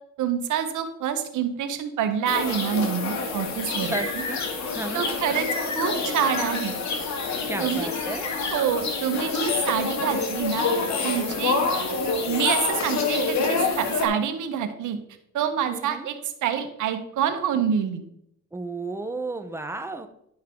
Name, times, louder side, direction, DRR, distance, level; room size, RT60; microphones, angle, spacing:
voice 1, 0.2-3.9 4.9-5.4 5.7-6.7 7.6-7.9 8.5-10.7 11.0-11.6 12.2-15.0 15.3-16.1 16.4-18.0, right 8 dB, 80° right, 8 dB, 1.2 m, -26 dB
sound 1, 2.3-14.1, left 4 dB, 65° left, 1.8 m, -27 dB
voice 2, 3.8-4.4 4.7-5.0 7.5-8.3 15.7-16.1 18.5-20.1, right 2 dB, 10° right, 7 dB, 1.0 m, -33 dB
11.0 x 5.4 x 3.8 m, 0.74 s
cardioid pair, 90°, 30 cm